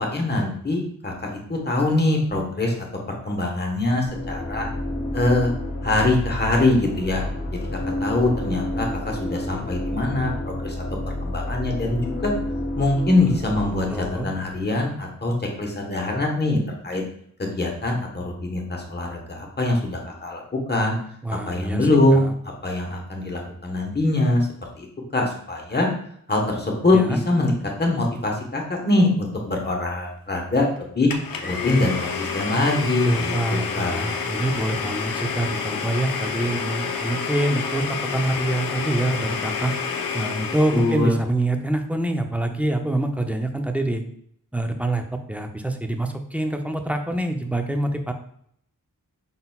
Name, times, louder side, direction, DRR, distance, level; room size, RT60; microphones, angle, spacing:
voice 1, 0.1-4.7 5.1-5.5 5.8-7.2 7.5-7.6 8.0-10.8 11.2-12.3 12.8-16.6 16.8-17.0 17.4-20.4 20.7-21.0 21.3-22.2 22.6-24.5 24.8-24.9 25.1-25.9 26.3-27.5 27.8-31.1 31.4-34.1 40.7-41.2, left 2 dB, 30° left, 1 dB, 1.1 m, -23 dB
sound 1, 4.1-14.8, left 1 dB, 50° left, 1.0 m, -30 dB
voice 2, 13.9-14.3 21.2-22.3 26.9-27.2 32.8-39.7 40.1-44.0 44.5-48.1, right 1 dB, 5° right, 5 dB, 0.5 m, -26 dB
Domestic sounds home sounds, 31.1-41.1, left 6 dB, 85° left, 0.6 m, -29 dB
5.3 x 3.9 x 2.3 m, 0.66 s
wide cardioid pair, 95°, 33 cm